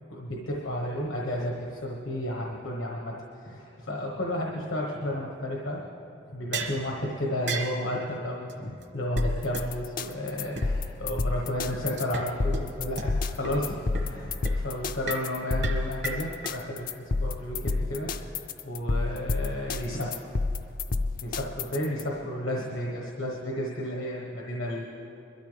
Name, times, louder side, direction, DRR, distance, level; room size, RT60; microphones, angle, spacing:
voice 1, 0.1-5.8 6.3-20.3 21.5-25.0, left 1 dB, 80° left, -2 dB, 1.3 m, -32 dB
sound 1, 6.5-6.8 7.5-7.8 8.5-8.6 8.8-8.9 9.2-9.3 9.5-9.6 10.1-10.2 10.6-10.7 12.0-12.3 12.5-12.6 13.0-13.1 13.4-13.5 13.9-14.2 14.4-14.6 15.1-15.3 15.6-16.5, right 3 dB, 60° right, 1.2 m, -34 dB
sound 2, 9.2-22.0, left 3 dB, 45° left, 0.5 m, -29 dB
22.0 x 13.0 x 3.4 m, 2.9 s
head